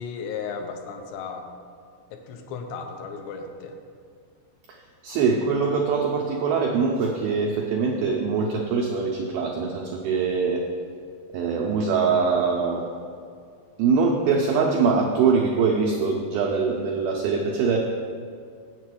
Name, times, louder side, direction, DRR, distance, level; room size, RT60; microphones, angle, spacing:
voice 1, 0.0-1.5 2.1-3.8, left 5 dB, 80° left, 5 dB, 2.7 m, -35 dB
voice 2, 5.0-10.6 11.3-12.9 13.8-17.8, right 5 dB, 85° right, 0 dB, 2.1 m, -23 dB
8.1 x 7.3 x 6.3 m, 2.3 s
omnidirectional pair, 5.3 m